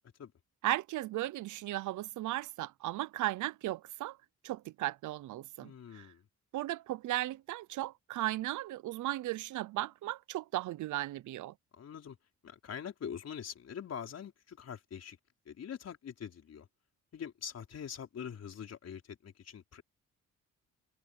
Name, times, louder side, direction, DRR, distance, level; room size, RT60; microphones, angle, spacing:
voice 1, 0.6-4.2 4.4-6.1 6.5-11.5, right 15 dB, 75° right, 0.8 m, -36 dB
voice 2, 5.6-6.2 11.7-12.2 12.4-15.2 15.5-16.7 17.1-19.8, left 8 dB, 55° left, 5.3 m, -44 dB
cardioid pair, 90°, 30 cm